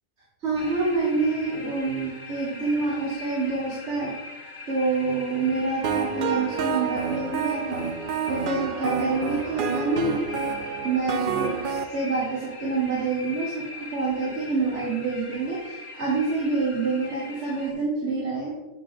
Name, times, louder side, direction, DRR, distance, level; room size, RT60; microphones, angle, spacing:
voice 1, 0.4-4.1 4.7-7.9 8.3-10.2 10.8-18.5, right 3 dB, 75° right, -4 dB, 1.5 m, -27 dB
sound 1, 0.6-17.7, left 3 dB, 25° left, 1.4 m, -41 dB
sound 2, 5.8-11.8, right 6 dB, 55° right, 0.6 m, -29 dB
8.4 x 5.7 x 3.3 m, 1.1 s
omnidirectional pair, 1.2 m